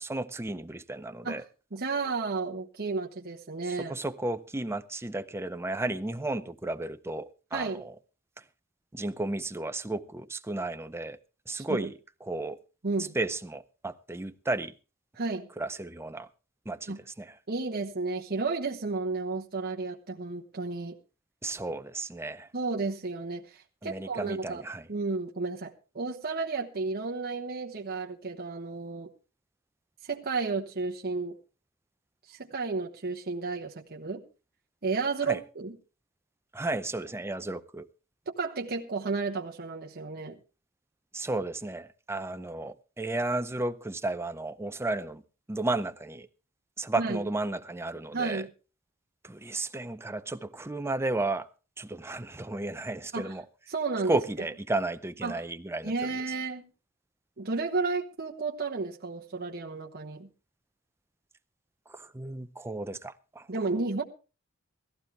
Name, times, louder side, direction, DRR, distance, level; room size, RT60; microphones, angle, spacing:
voice 1, 0.0-1.4 3.7-7.9 8.9-11.2 11.5-12.6 13.0-14.7 15.6-16.3 16.7-17.3 21.4-22.5 23.8-24.9 35.3-35.4 36.5-37.9 41.1-45.2 45.5-46.3 46.8-48.4 49.2-51.5 51.8-53.4 54.1-55.9 61.9-63.5, right 2 dB, 10° right, 0.6 m, -33 dB
voice 2, 1.7-4.0 7.5-7.8 11.5-11.9 12.8-13.2 15.1-15.5 16.9-17.0 17.5-20.9 22.5-24.6 24.9-29.1 30.0-31.4 32.3-34.2 34.8-35.8 38.3-40.4 47.0-47.2 48.1-48.5 53.1-53.3 53.7-54.2 55.2-55.4 55.8-56.7 57.4-60.3 63.5-64.0, right 4 dB, 50° right, 1.1 m, -32 dB
16.5 x 14.5 x 3.5 m
head